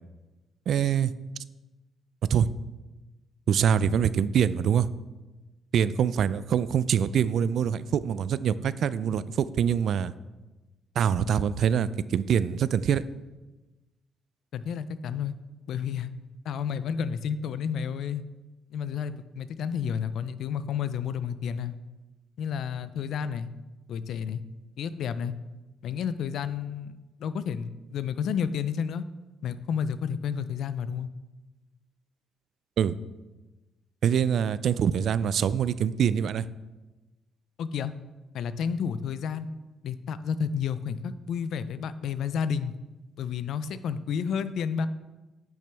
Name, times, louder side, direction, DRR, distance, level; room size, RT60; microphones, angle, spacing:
voice 1, 0.7-1.1 2.3-2.5 3.5-4.9 5.7-10.1 11.0-13.0 32.8-33.0 34.0-36.5, right 8 dB, 65° right, 16 dB, 0.3 m, -24 dB
voice 2, 14.5-15.3 15.7-16.1 16.4-18.2 18.7-21.8 22.4-23.5 23.9-24.4 24.8-25.3 25.8-29.0 29.4-31.1 37.6-37.9 38.3-39.5 39.8-42.7 43.2-44.9, left 7 dB, 75° left, 14 dB, 0.4 m, -31 dB
10.0 x 6.2 x 3.4 m, 1.1 s
cardioid pair, 90°, 0 cm